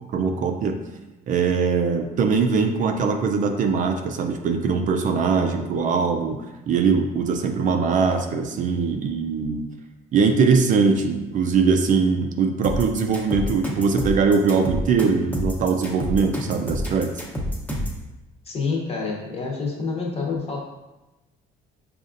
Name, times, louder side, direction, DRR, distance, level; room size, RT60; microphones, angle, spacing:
voice 1, 0.1-0.8 1.3-9.7 10.1-17.1, right 5 dB, 50° right, 5 dB, 0.4 m, -21 dB
sound 1, 12.6-18.0, equal, 10° left, 0.7 m, -28 dB
voice 2, 18.4-20.6, left 4 dB, 35° left, -1 dB, 0.9 m, -27 dB
5.1 x 2.4 x 2.5 m, 1.0 s
cardioid pair, 110°, 17 cm